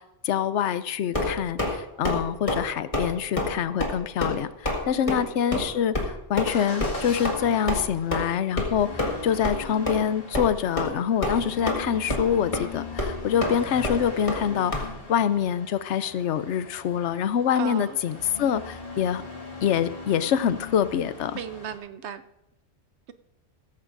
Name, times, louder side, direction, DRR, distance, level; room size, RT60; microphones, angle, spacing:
voice 1, 0.0-8.9 9.2-19.2 19.6-21.4, left 8 dB, 75° left, 0.9 m, -25 dB
sound 1, 1.1-1.7 2.0-2.2 2.5-2.7 2.9-3.1 3.4-3.5 3.8-3.9 4.2-4.4 4.7-4.8 5.1-5.2 5.5-5.7 5.9-6.1 6.4-6.5 6.8-6.9 7.2-7.4 7.7-7.8 8.1-8.2 8.6-8.7 9.0-9.2 9.4-9.6 9.9-10.0 10.3-10.5 10.8-10.9 11.2-11.8 12.1-12.3 12.5-12.6 13.0-13.1 13.4-13.5 13.8-14.0 14.3-14.4 14.7-14.8, left 2 dB, 30° left, 1.9 m, -26 dB
voice 2, 4.9-5.3 17.6-18.0 21.4-22.2, right 8 dB, 70° right, 1.0 m, -36 dB
Motor vehicle (road) / Engine starting / Accelerating revving vroom, 6.4-21.8, left 3 dB, 50° left, 2.2 m, -40 dB
16.0 x 14.0 x 2.6 m
omnidirectional pair, 1.2 m